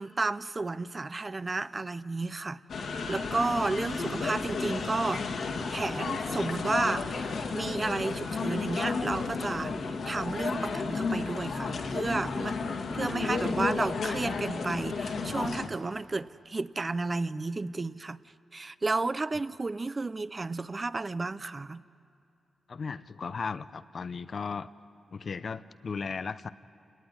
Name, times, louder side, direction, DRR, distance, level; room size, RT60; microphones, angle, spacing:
voice 1, 0.0-2.6 3.1-5.3 5.7-12.6 12.9-18.2 18.5-21.8, right 3 dB, 30° right, 15 dB, 0.7 m, -32 dB
sound 1, 2.7-15.7, left 4 dB, 75° left, 2.0 m, -32 dB
voice 2, 22.7-24.7 25.1-26.5, left 5 dB, 55° left, 14 dB, 0.7 m, -36 dB
28.0 x 19.0 x 9.8 m, 2.6 s
cardioid pair, 75°, 0 cm